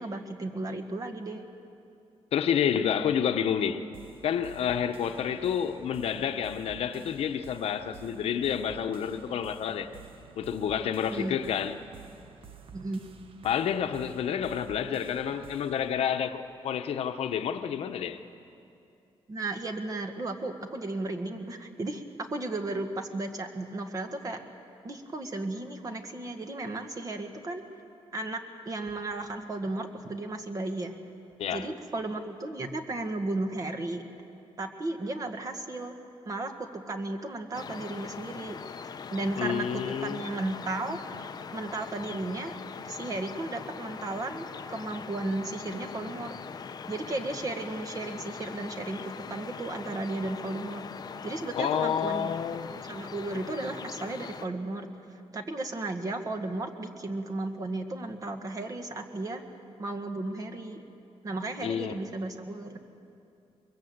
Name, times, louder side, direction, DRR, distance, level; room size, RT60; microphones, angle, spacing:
voice 1, 0.0-1.5 11.1-11.4 12.7-13.1 19.3-24.4 24.8-27.6 28.1-31.0 31.5-34.0 34.6-36.0 36.2-38.6 38.8-41.0 41.5-42.6 42.8-46.3 46.9-50.8 51.2-54.9 55.3-59.4 59.8-60.8 61.2-62.8, right 2 dB, 35° right, 1.8 m, -34 dB
voice 2, 2.3-3.8 4.2-9.9 10.4-11.8 13.4-18.2 31.4-31.7 39.4-40.2 51.5-52.7 61.6-62.0, left 8 dB, 75° left, 1.0 m, -29 dB
sound 1, 3.9-15.9, right 6 dB, 60° right, 1.3 m, -51 dB
sound 2, 37.5-54.5, left 6 dB, 40° left, 0.7 m, -41 dB
23.0 x 22.5 x 8.1 m
cardioid pair, 140°, 10 cm